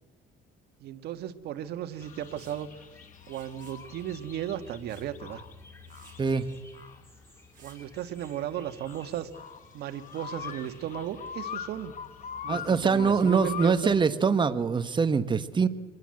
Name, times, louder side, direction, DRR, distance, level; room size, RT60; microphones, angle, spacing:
voice 1, 0.8-2.8 3.3-5.4 7.6-9.3 9.7-11.9 12.4-13.9, right 11 dB, 75° right, 9 dB, 1.7 m, -35 dB
sound 1, 1.9-12.7, left 1 dB, 15° left, 5.7 m, -57 dB
sound 2, 2.0-14.0, left 8 dB, 50° left, 1.9 m, -43 dB
Liquid, 2.4-2.6 3.3-3.8 4.9-5.1 5.5-5.6 5.9-6.2 7.5-7.8, right 8 dB, 50° right, 6.6 m, -57 dB
voice 2, 12.5-15.7, right 5 dB, 25° right, 10 dB, 1.4 m, -24 dB
25.0 x 20.5 x 7.8 m, 1.2 s
cardioid pair, 110°, 17 cm